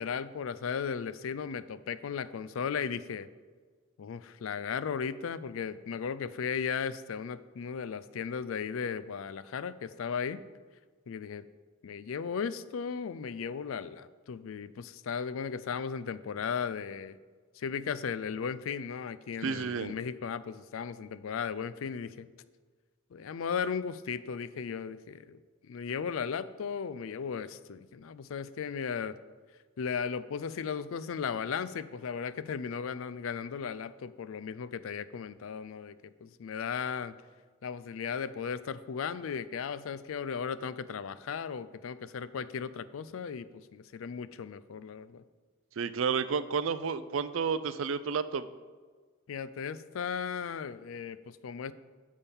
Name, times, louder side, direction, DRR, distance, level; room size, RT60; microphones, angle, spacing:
voice 1, 0.0-3.3 4.0-10.4 11.1-11.5 11.8-17.2 17.6-22.3 23.1-29.2 29.8-36.0 36.2-37.1 37.6-45.2 49.3-51.7, left 6 dB, 70° left, 15 dB, 0.4 m, -36 dB
voice 2, 19.4-19.9 45.8-48.5, right 6 dB, 70° right, 14 dB, 0.4 m, -31 dB
9.7 x 3.6 x 7.1 m, 1.5 s
head